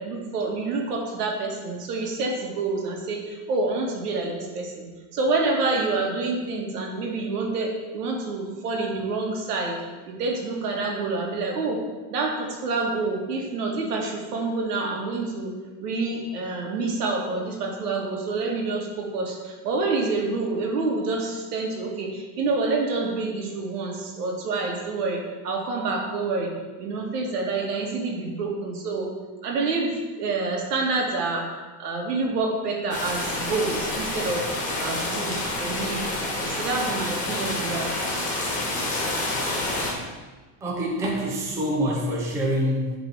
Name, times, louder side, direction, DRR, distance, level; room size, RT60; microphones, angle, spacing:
voice 1, 0.0-4.9 5.1-11.8 12.1-15.5 15.8-26.5 26.8-29.1 29.4-34.5 34.8-36.0 36.4-37.9, right 3 dB, 85° right, 1 dB, 2.2 m, -27 dB
sound 1, 32.9-39.9, left 2 dB, 15° left, 1.6 m, -28 dB
voice 2, 40.6-42.9, equal, 5° right, -2 dB, 0.6 m, -26 dB
11.0 x 4.1 x 5.8 m, 1.3 s
supercardioid pair, 180°, 45 cm